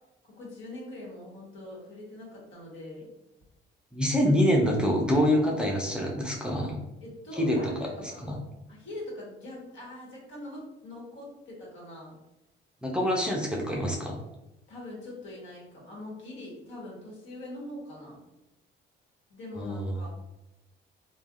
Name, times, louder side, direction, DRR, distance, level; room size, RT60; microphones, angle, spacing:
voice 1, 0.3-3.1 7.0-8.3 8.7-12.2 14.7-18.2 19.3-20.1, left 1 dB, 75° left, -5 dB, 1.3 m, -42 dB
voice 2, 3.9-6.8 7.4-7.7 8.0-8.4 12.8-14.2 19.6-20.0, equal, 5° right, -1 dB, 0.5 m, -26 dB
3.3 x 2.3 x 2.5 m, 0.93 s
cardioid pair, 90°, 20 cm